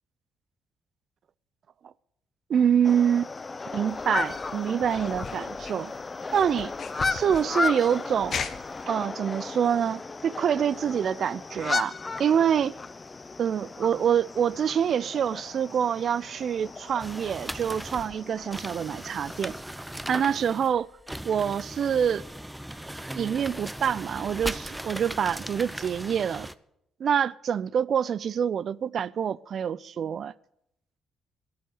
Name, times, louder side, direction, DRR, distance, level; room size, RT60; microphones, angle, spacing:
voice 1, 2.5-3.3 3.7-5.9 6.3-6.7 7.1-8.4 8.9-11.9 12.2-12.7 13.4-19.5 20.1-20.9 21.2-22.2 23.2-26.5 27.0-30.3, right 8 dB, 60° right, 0.4 m, -26 dB
sound 1, 2.8-19.6, left 4 dB, 30° left, 0.7 m, -35 dB
sound 2, 3.9-8.8, left 6 dB, 55° left, 1.3 m, -39 dB
sound 3, 17.0-26.5, right 1 dB, 10° right, 0.8 m, -38 dB
11.0 x 9.4 x 9.2 m
hypercardioid pair, 50°, 0 cm